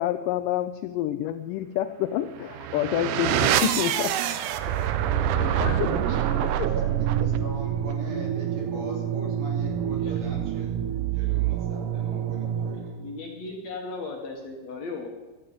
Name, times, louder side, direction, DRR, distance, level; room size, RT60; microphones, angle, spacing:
voice 1, 0.0-4.2 4.7-4.8 5.3-6.6, left 12 dB, 85° left, 11 dB, 1.9 m, -29 dB
sound 1, 2.4-13.1, right 10 dB, 75° right, 2.0 m, -26 dB
voice 2, 6.1-13.0, right 2 dB, 55° right, -2 dB, 4.3 m, -40 dB
voice 3, 13.0-15.1, left 3 dB, 60° left, 1 dB, 2.2 m, -36 dB
16.0 x 12.0 x 4.0 m, 1.3 s
omnidirectional pair, 4.2 m